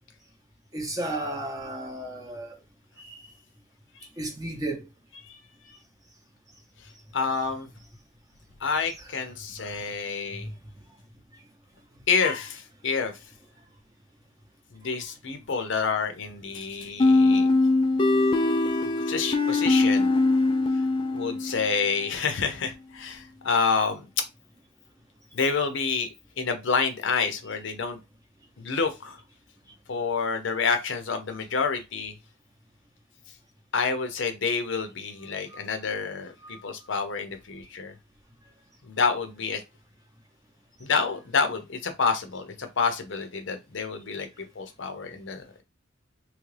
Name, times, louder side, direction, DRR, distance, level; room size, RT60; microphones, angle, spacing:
voice 1, 0.7-2.6 3.0-3.2 4.2-4.9 35.5-35.6 36.4-36.6, right 1 dB, 20° right, 0.7 m, -33 dB
voice 2, 7.1-7.7 8.6-10.5 12.1-13.1 14.7-17.5 19.1-20.1 21.1-24.0 25.3-26.1 26.4-28.0 28.6-29.2 29.9-32.1 33.7-37.9 38.9-39.6 40.8-45.6, left 5 dB, 65° left, 0.6 m, -28 dB
sound 1, 17.0-21.7, left 2 dB, 25° left, 0.3 m, -22 dB
3.1 x 2.4 x 3.2 m
head